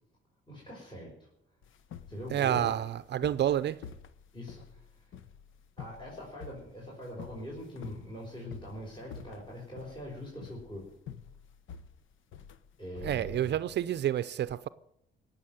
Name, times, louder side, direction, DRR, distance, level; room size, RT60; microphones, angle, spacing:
voice 1, 0.5-1.3 2.1-2.7 4.3-5.1 5.8-10.9 12.8-13.6, equal, 25° left, 5.5 m, -43 dB
sound 1, 1.6-13.9, left 7 dB, 80° left, 1.0 m, -48 dB
voice 2, 2.3-3.8 13.0-14.7, right 11 dB, 60° right, 0.6 m, -29 dB
18.0 x 7.0 x 9.2 m
cardioid pair, 90°, 20 cm